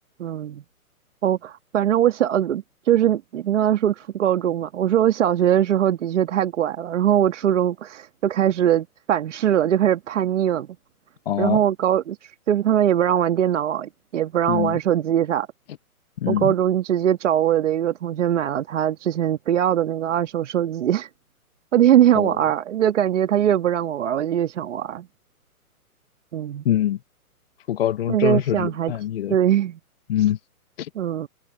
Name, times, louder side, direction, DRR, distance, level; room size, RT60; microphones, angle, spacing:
voice 1, 0.2-0.6 1.2-10.7 11.4-15.5 16.3-21.1 21.7-25.1 26.3-26.6 28.1-28.9 29.3-29.8 31.0-31.3, right 10 dB, 50° right, 1.7 m, -21 dB
voice 2, 11.3-11.6 14.5-14.8 16.2-16.5 22.1-22.3 26.6-27.0 27.7-29.4 30.1-30.4 30.8-30.9, left 11 dB, 40° left, 0.8 m, -23 dB
hypercardioid pair, 145°, 45 cm